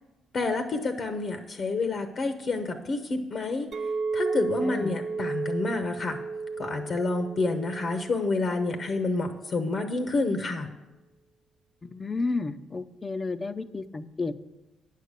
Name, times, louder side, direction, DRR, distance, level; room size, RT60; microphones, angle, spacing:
voice 1, 0.3-3.7 4.1-6.2 6.6-10.7, left 3 dB, 50° left, 7 dB, 0.8 m, -28 dB
Chink clink, 3.7-8.9, right 4 dB, 55° right, 0.5 m, -33 dB
voice 2, 4.6-4.9 11.8-14.4, left 3 dB, 30° left, 13 dB, 0.6 m, -32 dB
9.2 x 6.6 x 6.7 m, 1.0 s
cardioid pair, 90°, 0 cm